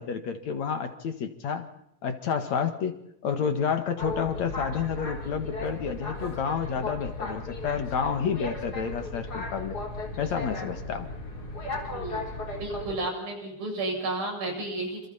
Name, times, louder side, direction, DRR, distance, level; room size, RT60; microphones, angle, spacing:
voice 1, 0.0-1.7 2.0-9.8 10.2-11.1, left 7 dB, 55° left, 8 dB, 2.7 m, -30 dB
Boat Water vehicle, 4.0-12.9, left 2 dB, 25° left, 4.3 m, -36 dB
voice 2, 12.6-15.1, right 2 dB, 80° right, 1 dB, 9.6 m, -32 dB
27.5 x 27.5 x 4.3 m, 0.73 s
omnidirectional pair, 4.1 m